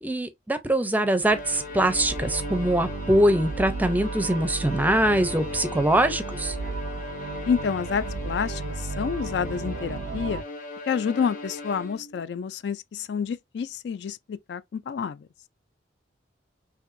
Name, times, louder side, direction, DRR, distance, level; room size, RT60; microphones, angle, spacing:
voice 1, 0.0-6.6, right 1 dB, 10° right, 0.5 m, -23 dB
Bowed string instrument, 1.2-12.2, left 2 dB, 45° left, 1.0 m, -38 dB
sound 1, 1.2-10.4, right 4 dB, 70° right, 0.4 m, -35 dB
voice 2, 7.5-10.4 10.9-15.3, left 6 dB, 65° left, 0.3 m, -29 dB
5.7 x 2.6 x 2.5 m
head